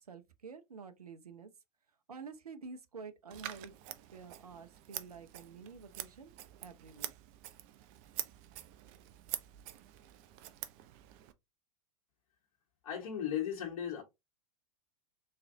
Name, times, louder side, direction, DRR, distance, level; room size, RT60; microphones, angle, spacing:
voice 1, 0.0-1.5 2.1-3.7 4.1-6.4 6.6-7.1, right 5 dB, 85° right, 0.6 m, -49 dB
Scissors, 3.3-11.3, right 13 dB, 45° right, 0.6 m, -46 dB
voice 2, 12.8-14.0, left 9 dB, 50° left, 1.4 m, -36 dB
3.8 x 3.2 x 2.7 m
figure-of-eight pair, 95°, 19 cm